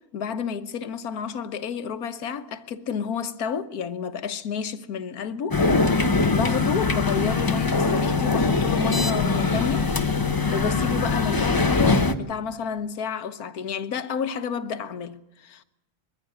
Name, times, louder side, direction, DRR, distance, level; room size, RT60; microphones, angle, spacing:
voice 1, 0.1-5.6 6.3-9.9 10.2-15.6, left 6 dB, 85° left, 1.5 m, -30 dB
sound 1, 5.5-12.1, left 4 dB, 20° left, 0.7 m, -22 dB
21.5 x 14.5 x 9.1 m
omnidirectional pair, 1.5 m